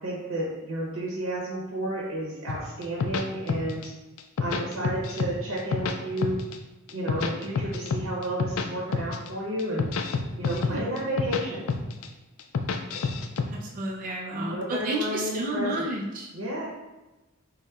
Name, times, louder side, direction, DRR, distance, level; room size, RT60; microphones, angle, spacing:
voice 1, 0.0-3.9 4.4-6.4 6.9-9.9 10.4-11.6 14.3-15.9 16.3-16.7, right 1 dB, 80° right, -4 dB, 0.8 m, -31 dB
sound 1, 2.5-3.9 4.2-5.3 5.6-6.5 6.9-8.7 8.9-9.3 9.6-11.4 11.7-12.1 12.4-13.5, left 5 dB, 75° left, 0.4 m, -28 dB
voice 2, 10.5-10.9 13.5-16.3, right 1 dB, 40° right, -1 dB, 0.4 m, -31 dB
6.3 x 2.1 x 2.3 m, 1.1 s
head